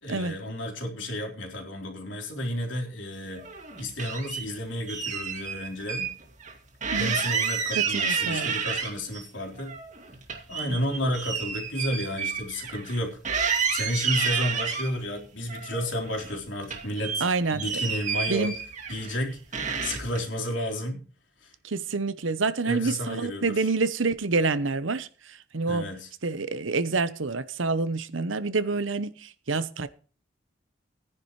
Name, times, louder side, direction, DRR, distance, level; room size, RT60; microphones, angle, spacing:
voice 1, 0.0-3.5 3.8-6.1 7.0-9.7 10.5-17.2 17.5-18.5 18.9-21.0 21.4-21.5 22.6-23.7 25.6-26.1, left 1 dB, 75° left, 3.6 m, -32 dB
sound 1, 3.4-4.4 4.9-6.1 6.4-6.5 6.8-9.2 9.6-13.0 13.2-14.9 15.5-16.4 16.6-19.2 19.5-20.2, right 6 dB, 40° right, 2.4 m, -30 dB
voice 2, 7.8-8.6 10.7-10.8 17.2-17.6 18.3-18.5 21.6-25.9 26.2-29.9, right 3 dB, 85° right, 0.9 m, -27 dB
17.0 x 10.0 x 3.2 m
head